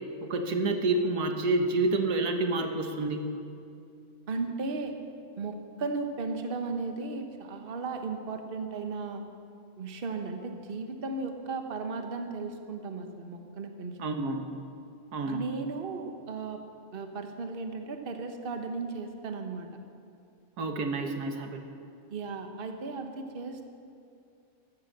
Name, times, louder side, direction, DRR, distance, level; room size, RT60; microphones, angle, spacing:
voice 1, 0.2-3.3 14.0-14.4 15.1-15.4 20.6-21.6, right 2 dB, 85° right, 5 dB, 1.7 m, -28 dB
voice 2, 4.3-4.9 5.4-9.2 9.8-14.0 15.3-16.6 16.9-19.7 22.1-23.6, right 3 dB, 40° right, 5 dB, 1.2 m, -35 dB
14.5 x 13.5 x 6.6 m, 2.5 s
omnidirectional pair, 1.6 m